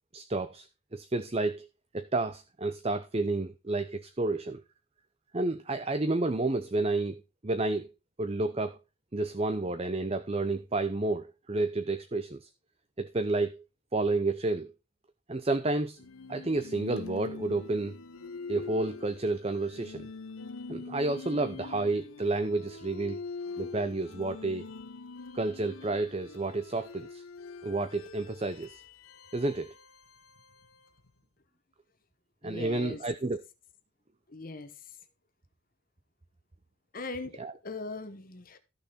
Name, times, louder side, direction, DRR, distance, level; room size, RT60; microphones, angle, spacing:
voice 1, 0.1-0.7 0.9-1.7 1.9-4.6 5.3-7.9 8.2-8.8 9.1-12.5 13.0-13.6 13.9-14.7 15.3-16.0 16.3-18.0 18.5-20.1 20.7-23.2 23.6-24.6 25.3-27.2 27.6-28.8 29.3-29.7 32.4-33.4 37.4-37.5, right 2 dB, 30° right, 0.6 m, -30 dB
sound 1, 16.0-31.1, left 4 dB, 80° left, 0.8 m, -44 dB
voice 2, 32.4-33.0 34.3-34.7 36.9-37.4 37.6-38.6, left 3 dB, 40° left, 1.1 m, -39 dB
14.0 x 6.6 x 4.3 m
head